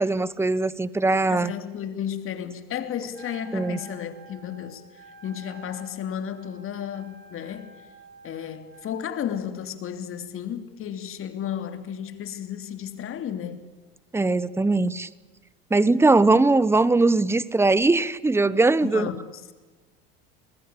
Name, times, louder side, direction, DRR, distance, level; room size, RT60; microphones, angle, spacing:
voice 1, 0.0-1.5 3.5-3.8 14.1-15.1 15.7-19.1, right 3 dB, 10° right, 1.0 m, -20 dB
voice 2, 1.3-7.7 8.2-13.7 18.8-19.5, left 9 dB, 45° left, 3.0 m, -33 dB
Wind instrument woodwind instrument, 3.1-9.3, right 2 dB, 40° right, 5.4 m, -49 dB
26.0 x 20.0 x 8.6 m
hypercardioid pair, 85°, 31 cm